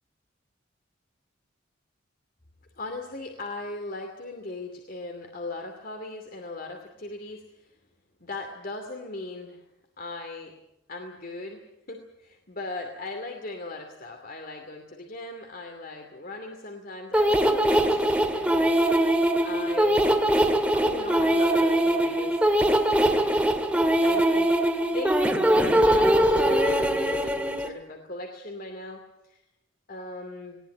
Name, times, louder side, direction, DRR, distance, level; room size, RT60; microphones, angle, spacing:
voice 1, 2.8-7.4 8.2-9.6 10.0-10.5 10.9-18.8 19.4-20.1 20.5-22.7 23.0-23.6 24.0-24.5 24.9-29.4 29.9-30.6, left 2 dB, 50° left, 4 dB, 2.6 m, -38 dB
sound 1, 17.1-27.7, right 1 dB, 5° right, 1.8 m, -22 dB
20.0 x 18.5 x 9.2 m, 0.85 s
head